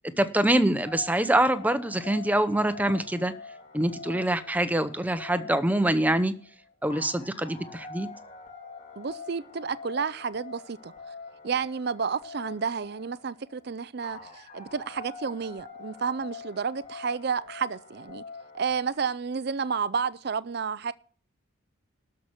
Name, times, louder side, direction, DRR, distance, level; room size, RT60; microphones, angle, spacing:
voice 1, 0.2-3.3 3.7-6.3 6.8-8.1, right 1 dB, 10° right, 0.8 m, -25 dB
sound 1, 0.8-18.9, left 4 dB, 35° left, 2.9 m, -45 dB
voice 2, 9.0-10.9 11.4-18.2 18.5-20.9, right 5 dB, 50° right, 0.5 m, -31 dB
13.0 x 5.8 x 8.0 m
head